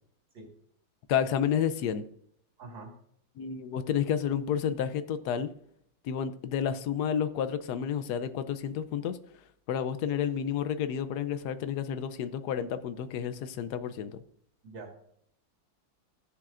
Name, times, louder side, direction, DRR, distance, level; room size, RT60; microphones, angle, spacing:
voice 1, 1.1-2.1 3.4-5.5 6.0-9.2 9.7-14.2, left 8 dB, 70° left, 1.0 m, -30 dB
voice 2, 2.6-2.9 14.6-15.0, right 3 dB, 70° right, 2.5 m, -44 dB
15.0 x 7.4 x 2.5 m
omnidirectional pair, 2.2 m